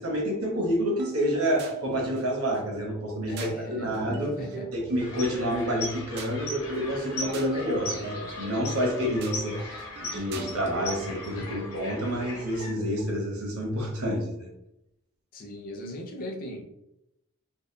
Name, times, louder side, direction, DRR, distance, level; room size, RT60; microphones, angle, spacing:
voice 1, 0.0-4.4 4.7-14.5, equal, 75° right, 0 dB, 0.8 m, -29 dB
sound 1, 1.0-13.1, right 3 dB, 50° right, 0.3 m, -41 dB
voice 2, 3.3-4.7 11.4-11.6 15.3-16.6, left 1 dB, 40° left, 0 dB, 0.5 m, -39 dB
sound 2, 5.0-12.7, left 2 dB, 85° left, 0.9 m, -38 dB
2.7 x 2.1 x 2.2 m, 0.84 s
head